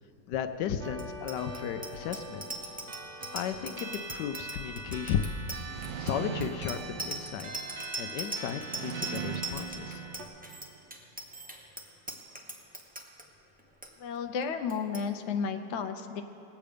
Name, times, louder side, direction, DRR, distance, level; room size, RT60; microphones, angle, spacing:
voice 1, 0.3-2.4 3.3-5.2 6.0-7.5 8.0-10.0, left 8 dB, 80° left, 9 dB, 1.2 m, -34 dB
sound 1, 0.8-10.2, right 2 dB, 45° right, 1.2 m, -43 dB
Bicycle bell, 0.9-13.2 13.6-13.9 14.1-14.4 14.7-15.0, right 2 dB, 10° right, 0.6 m, -40 dB
sound 2, 5.7-7.9 8.6-10.8, right 8 dB, 85° right, 1.3 m, -40 dB
voice 2, 14.0-16.2, left 6 dB, 60° left, 6 dB, 0.7 m, -32 dB
19.0 x 8.3 x 5.1 m, 3.0 s
omnidirectional pair, 1.8 m